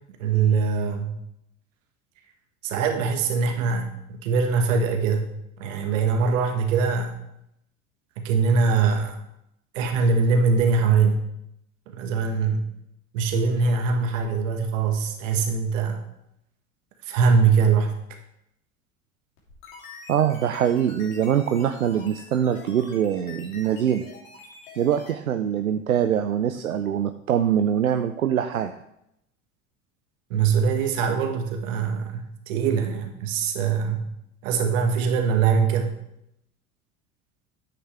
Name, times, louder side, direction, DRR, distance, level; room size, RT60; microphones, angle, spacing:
voice 1, 0.2-1.2 2.6-5.3 5.6-7.2 8.2-9.1 9.7-11.2 11.9-12.7 13.1-16.0 17.0-17.9 30.3-34.1 34.4-35.9, right 5 dB, 65° right, 4 dB, 1.6 m, -22 dB
sound 1, 19.4-25.1, left 3 dB, 70° left, 3.0 m, -45 dB
voice 2, 20.1-24.1 24.8-28.7, right 9 dB, 90° right, 8 dB, 0.6 m, -23 dB
9.9 x 8.5 x 3.4 m, 0.80 s
figure-of-eight pair, 75°, 41 cm